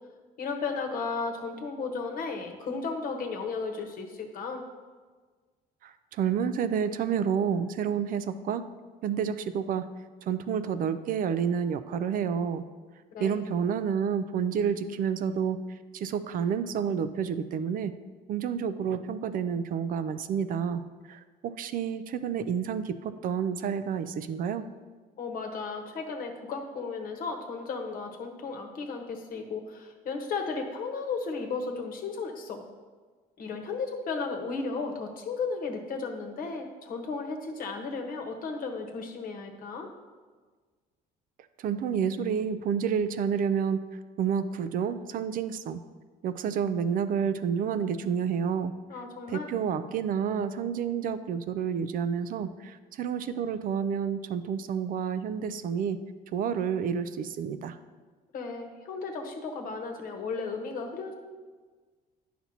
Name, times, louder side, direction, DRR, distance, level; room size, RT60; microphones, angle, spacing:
voice 1, 0.4-4.6 13.1-13.4 25.2-32.6 33.4-39.9 48.9-49.5 58.3-61.1, left 4 dB, 55° left, 3 dB, 1.1 m, -34 dB
voice 2, 5.8-8.6 9.0-9.9 10.2-12.6 13.2-15.6 15.9-17.9 18.3-20.8 21.1-24.6 41.6-43.9 44.2-45.8 46.2-48.7 49.3-56.0 56.3-57.8, right 7 dB, 55° right, 11 dB, 0.4 m, -29 dB
9.3 x 5.9 x 2.8 m, 1.4 s
cardioid pair, 110°, 17 cm